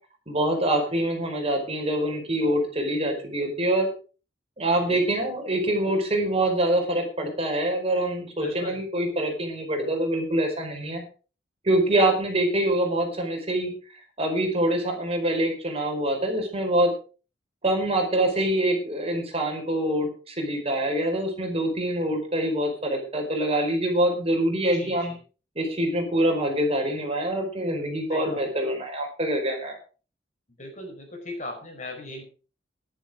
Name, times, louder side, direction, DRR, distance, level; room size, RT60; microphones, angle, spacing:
voice 1, 0.3-3.9 4.6-11.0 11.6-13.7 14.2-16.9 17.6-25.1 25.5-29.8, right 1 dB, 35° right, 3 dB, 4.8 m, -25 dB
voice 2, 8.4-8.8 24.7-25.2 28.1-28.4 30.6-32.2, left 1 dB, 40° left, 3 dB, 5.3 m, -39 dB
14.0 x 11.5 x 4.9 m, 0.36 s
head